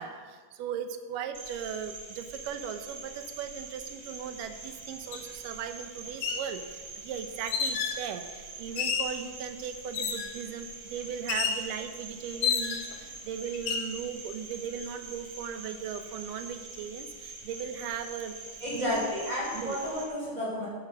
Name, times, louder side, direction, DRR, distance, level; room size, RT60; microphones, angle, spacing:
voice 1, 0.0-18.4 18.7-19.0 19.5-19.8, right 8 dB, 85° right, 8 dB, 2.4 m, -38 dB
Cricket, 1.3-20.0, right 3 dB, 60° right, 3.7 m, -45 dB
sound 1, 5.1-5.2 6.1-6.5 7.5-8.0 8.8-9.2 9.9-10.4 11.3-11.6 12.4-13.0 13.5-13.9, left 6 dB, 85° left, 2.9 m, -30 dB
voice 2, 18.6-20.7, left 1 dB, 25° right, -6 dB, 4.2 m, -31 dB
12.5 x 9.9 x 6.3 m, 1.5 s
omnidirectional pair, 3.7 m